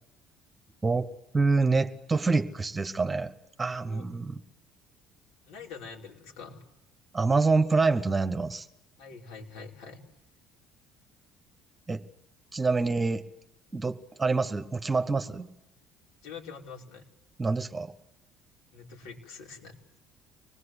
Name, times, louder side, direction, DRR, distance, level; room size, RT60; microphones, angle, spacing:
voice 1, 1.3-3.3 3.6-4.4 7.1-8.7 11.9-12.0 12.5-13.2 13.7-15.5 17.4-17.9, right 3 dB, 15° right, 10 dB, 1.3 m, -26 dB
voice 2, 5.5-6.7 9.0-10.0 16.2-17.1 18.7-19.8, left 5 dB, 90° left, -1 dB, 5.3 m, -45 dB
25.0 x 20.5 x 8.2 m, 0.86 s
cardioid pair, 150°, 0 cm